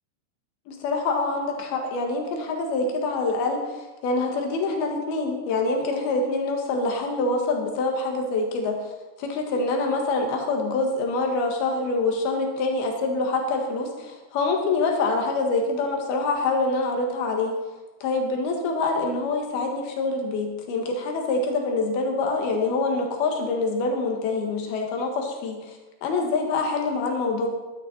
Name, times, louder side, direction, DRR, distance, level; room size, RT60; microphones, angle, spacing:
voice 1, 0.7-8.9 9.2-17.5 18.0-27.5, left 3 dB, 70° left, 2 dB, 3.4 m, -25 dB
13.0 x 11.5 x 4.3 m, 1.2 s
omnidirectional pair, 4.9 m